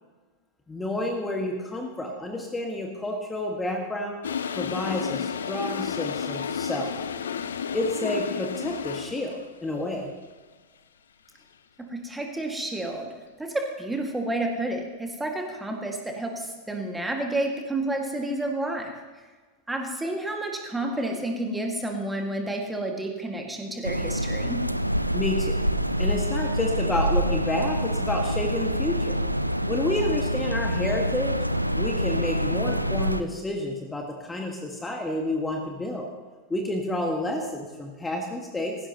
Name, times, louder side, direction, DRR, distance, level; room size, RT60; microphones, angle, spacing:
voice 1, 0.7-4.1 4.6-6.9 7.7-10.1 25.1-25.6 26.0-29.2 29.7-31.3 31.8-36.1 36.5-38.8, left 1 dB, 10° left, 1 dB, 1.8 m, -30 dB
Toilet flush, 4.2-9.5, left 7 dB, 65° left, 0.6 m, -31 dB
voice 2, 11.8-19.0 19.7-24.7, right 1 dB, 5° right, 2 dB, 2.0 m, -30 dB
sound 1, 23.8-33.2, equal, 90° right, 0.5 m, -26 dB
18.0 x 16.0 x 3.0 m, 1.3 s
figure-of-eight pair, 90°, 0 cm